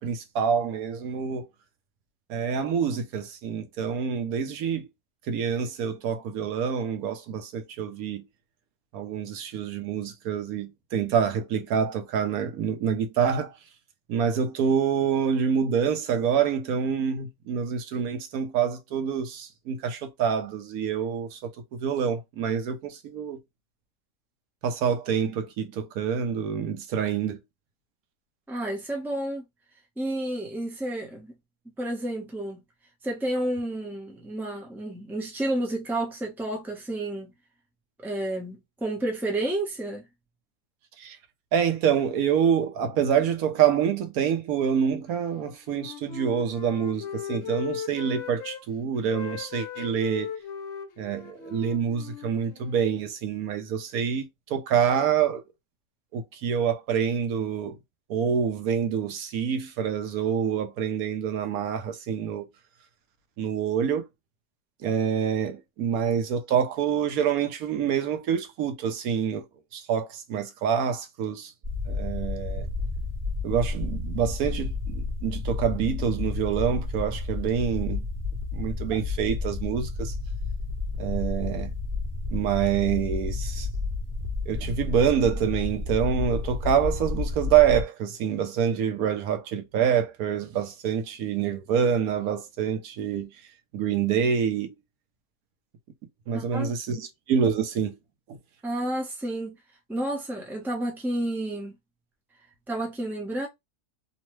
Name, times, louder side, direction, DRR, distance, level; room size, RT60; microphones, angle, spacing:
voice 1, 0.0-1.4 2.3-4.9 5.3-8.2 8.9-13.5 14.1-21.5 21.8-23.4 24.6-27.4 41.0-41.2 41.5-50.3 51.0-55.4 56.1-57.8 58.1-62.5 63.4-64.0 64.8-69.4 69.7-71.5 71.9-72.7 73.4-78.0 78.5-80.1 81.0-81.7 82.3-83.7 84.5-93.3 93.7-94.7 96.3-97.9, right 7 dB, 75° right, 1.1 m, -26 dB
voice 2, 28.5-29.4 30.0-31.3 31.8-32.6 33.0-37.3 38.0-40.1 96.3-97.0 98.6-99.6 99.9-101.8 102.7-103.5, right 1 dB, ahead, 0.5 m, -31 dB
Wind instrument woodwind instrument, 45.3-48.6 49.0-52.9, left 8 dB, 60° left, 0.8 m, -38 dB
sound 1, 71.6-87.8, left 3 dB, 40° right, 0.9 m, -31 dB
3.1 x 2.1 x 3.1 m
omnidirectional pair, 1.6 m